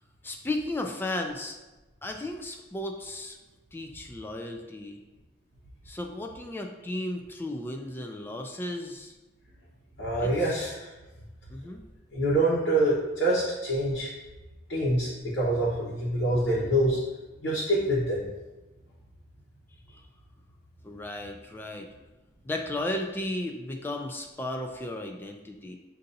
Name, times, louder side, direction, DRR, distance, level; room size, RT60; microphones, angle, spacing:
voice 1, 0.2-1.6 2.0-3.4 3.7-5.0 5.9-9.1 10.2-10.5 11.5-11.8 19.9-20.0 20.8-21.9 22.4-25.8, left 1 dB, 10° left, 3 dB, 0.3 m, -34 dB
voice 2, 10.0-10.7 12.1-14.1 14.7-17.0 17.4-18.3, right 1 dB, 80° left, -8 dB, 1.0 m, -25 dB
6.6 x 2.6 x 2.6 m, 1.1 s
head